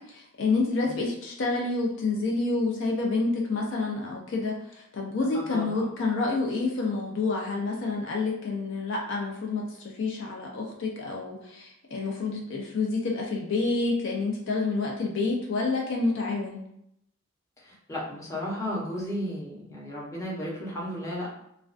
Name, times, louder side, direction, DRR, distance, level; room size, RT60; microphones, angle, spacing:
voice 1, 0.1-16.6, left 3 dB, 65° left, -1 dB, 0.4 m, -28 dB
voice 2, 17.6-21.3, equal, 15° left, -6 dB, 0.7 m, -34 dB
2.4 x 2.2 x 2.4 m, 0.77 s
head